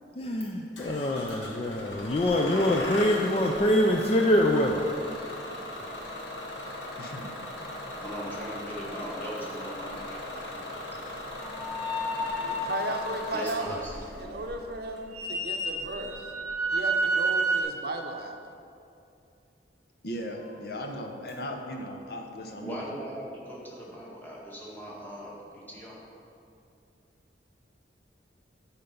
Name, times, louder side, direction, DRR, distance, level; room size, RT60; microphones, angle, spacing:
voice 1, 0.2-4.9 6.7-6.8, left 1 dB, 35° left, 1 dB, 0.4 m, -25 dB
Bus / Engine starting, 0.8-17.0, left 1 dB, 75° left, 1.3 m, -39 dB
voice 2, 2.5-2.9 8.0-11.2 13.3-14.4 22.6-26.0, equal, 10° left, -6 dB, 1.6 m, -40 dB
voice 3, 7.0-7.3 12.4-12.6 20.0-22.8, equal, 60° left, 3 dB, 0.8 m, -37 dB
sound 1, 11.4-12.7 15.1-17.6, right 2 dB, 15° right, 1.5 m, -29 dB
voice 4, 12.4-16.2 16.7-18.4, right 2 dB, 60° right, 4 dB, 0.7 m, -35 dB
10.5 x 4.4 x 5.5 m, 2.6 s
head